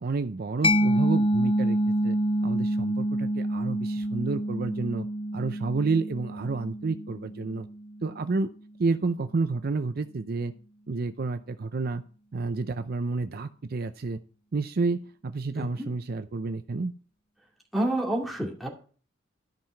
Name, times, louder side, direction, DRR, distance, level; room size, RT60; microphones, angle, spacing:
voice 1, 0.0-1.8 2.0-5.1 5.3-7.7 8.0-8.5 8.8-10.5 10.9-12.0 12.3-14.2 14.5-16.9, right 3 dB, 50° right, 10 dB, 0.5 m, -30 dB
Mallet percussion, 0.6-8.0, right 1 dB, 25° left, 0.6 m, -27 dB
voice 2, 15.5-15.9 17.7-18.7, right 1 dB, ahead, -2 dB, 2.4 m, -28 dB
13.0 x 5.8 x 4.5 m, 0.41 s
head